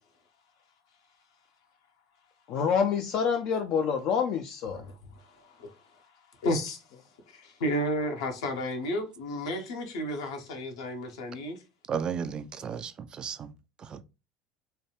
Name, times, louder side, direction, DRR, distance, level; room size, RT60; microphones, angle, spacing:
voice 1, 2.5-4.8, left 6 dB, 45° left, 0.4 m, -27 dB
voice 2, 4.7-6.0 6.4-6.8 7.3-11.6, equal, 65° left, 0.8 m, -32 dB
voice 3, 11.9-13.5 13.8-14.0, right 7 dB, 30° right, 0.3 m, -34 dB
3.2 x 2.3 x 2.9 m
figure-of-eight pair, 70°, 3 cm